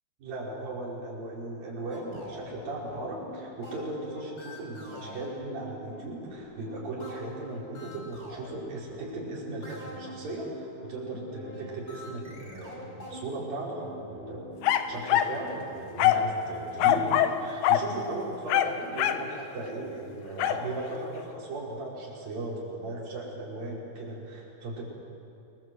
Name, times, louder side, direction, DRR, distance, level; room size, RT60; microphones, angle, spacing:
voice 1, 0.2-14.6 14.9-24.9, right 2 dB, 45° right, -4 dB, 6.7 m, -37 dB
sound 1, 1.9-15.0, left 1 dB, 20° left, 5.0 m, -44 dB
sound 2, 14.6-15.4 16.0-16.3 16.8-17.4 17.6-17.9 18.5-19.3 20.4-20.6, left 11 dB, 75° left, 2.9 m, -23 dB
28.5 x 21.0 x 8.0 m, 2.8 s
omnidirectional pair, 5.6 m